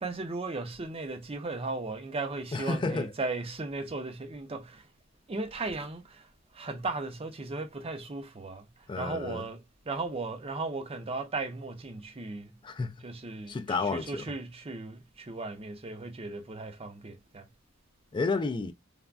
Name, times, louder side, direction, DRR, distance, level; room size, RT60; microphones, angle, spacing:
voice 1, 0.0-4.9 5.3-6.3 6.5-8.7 9.0-12.6 13.0-13.6 13.9-17.5, right 3 dB, 30° right, 0.5 m, -36 dB
voice 2, 2.5-3.1 8.9-9.5 12.6-13.0 13.5-14.2 18.1-18.7, left 3 dB, 25° left, 0.3 m, -31 dB
3.3 x 2.1 x 2.4 m
head